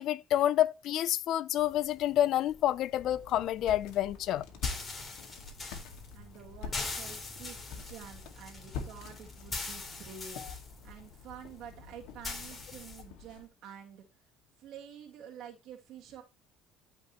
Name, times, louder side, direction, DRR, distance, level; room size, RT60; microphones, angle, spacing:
voice 1, 0.0-4.5, left 12 dB, 60° left, 0.6 m, -28 dB
sound 1, 1.6-13.0, left 3 dB, 25° left, 3.7 m, -43 dB
sound 2, 3.0-13.5, left 5 dB, 80° left, 2.0 m, -45 dB
voice 2, 6.1-14.1 14.6-16.2, right 8 dB, 65° right, 2.1 m, -49 dB
14.0 x 5.2 x 3.1 m
supercardioid pair, 100°, 0 cm